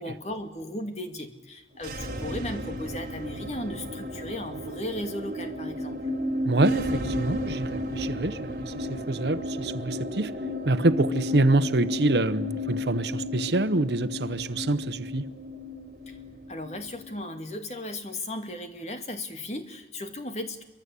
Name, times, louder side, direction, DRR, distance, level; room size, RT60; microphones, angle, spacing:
voice 1, 0.0-6.0 16.1-16.2 16.5-20.6, left 1 dB, 40° left, 2.3 m, -36 dB
sound 1, 1.7-17.2, left 1 dB, 50° right, 4.3 m, -33 dB
voice 2, 6.4-10.3 10.6-15.2, right 2 dB, 75° right, 1.0 m, -26 dB
27.5 x 24.0 x 8.4 m
head